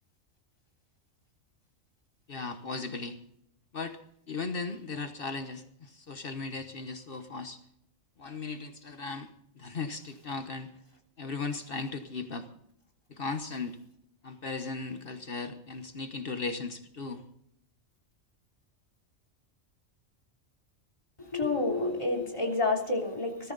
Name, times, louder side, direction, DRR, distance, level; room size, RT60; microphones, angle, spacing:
voice 1, 2.3-3.2 3.7-4.0 4.3-7.6 8.2-9.3 9.6-10.7 11.2-12.4 13.2-13.8 14.2-17.2, left 4 dB, 50° left, 8 dB, 1.3 m, -37 dB
voice 2, 21.2-23.5, left 2 dB, 25° left, 0 dB, 3.3 m, -29 dB
20.5 x 14.0 x 4.0 m, 0.74 s
omnidirectional pair, 1.3 m